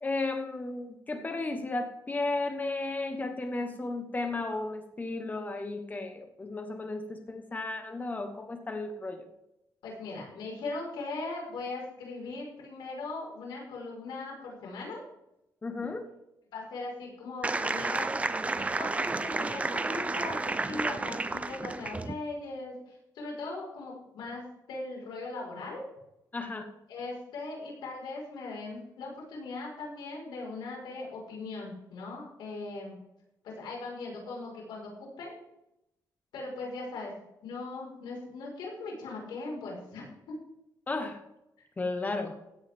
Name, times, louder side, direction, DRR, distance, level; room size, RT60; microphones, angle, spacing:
voice 1, 0.0-9.3 15.6-16.1 26.3-26.7 40.9-41.2 41.8-42.4, left 2 dB, 20° left, 5 dB, 1.3 m, -34 dB
voice 2, 9.8-15.0 16.5-18.1 18.6-25.8 26.9-32.9 33.4-35.3 36.3-37.1 37.4-40.1, left 3 dB, 90° left, -1 dB, 5.1 m, -39 dB
sound 1, 17.4-22.1, right 3 dB, 15° right, 0.7 m, -31 dB
16.5 x 8.8 x 3.7 m, 0.86 s
cardioid pair, 120°, 8 cm